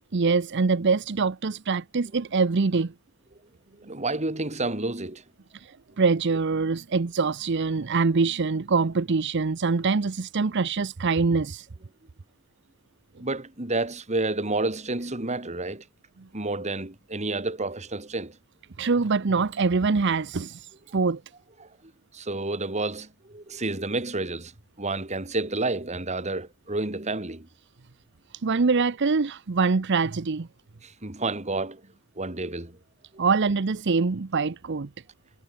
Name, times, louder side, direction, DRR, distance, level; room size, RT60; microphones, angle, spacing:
voice 1, 0.1-2.9 5.5-11.7 18.8-21.2 28.4-30.5 33.2-34.9, right 4 dB, 55° right, 0.7 m, -24 dB
voice 2, 3.8-5.2 13.2-15.8 16.3-18.4 21.6-21.7 22.1-24.5 24.8-27.5 30.8-31.8 32.2-32.8 33.1-33.2, right 2 dB, 30° right, 2.4 m, -30 dB
head